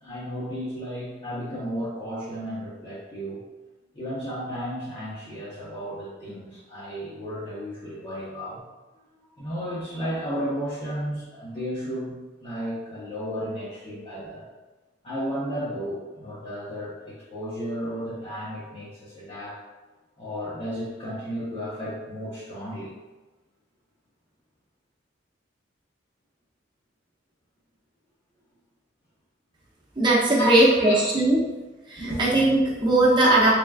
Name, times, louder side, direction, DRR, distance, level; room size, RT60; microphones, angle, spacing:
voice 1, 0.0-3.4 3.9-8.6 9.1-12.1 12.4-14.5 15.0-19.6 20.2-22.9 30.4-31.0 32.0-32.2 33.2-33.5, equal, 30° left, -11 dB, 0.9 m, -32 dB
voice 2, 30.0-31.4 31.9-33.5, right 1 dB, 25° right, -6 dB, 0.8 m, -19 dB
3.8 x 3.4 x 2.4 m, 1.2 s
head